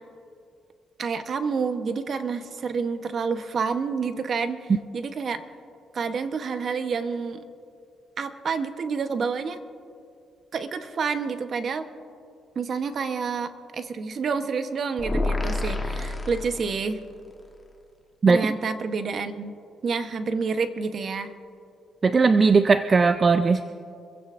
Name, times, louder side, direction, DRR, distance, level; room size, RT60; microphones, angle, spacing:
voice 1, 1.0-5.4 5.9-7.4 8.2-9.6 10.5-11.9 12.5-17.0 18.3-19.5 19.8-21.3, right 5 dB, 50° right, 9 dB, 0.9 m, -28 dB
sound 1, 15.0-17.1, left 2 dB, 15° left, 1.2 m, -28 dB
voice 2, 22.0-23.6, right 4 dB, 35° right, 10 dB, 0.5 m, -18 dB
25.0 x 16.0 x 2.6 m, 2.4 s
cardioid pair, 90°, 0 cm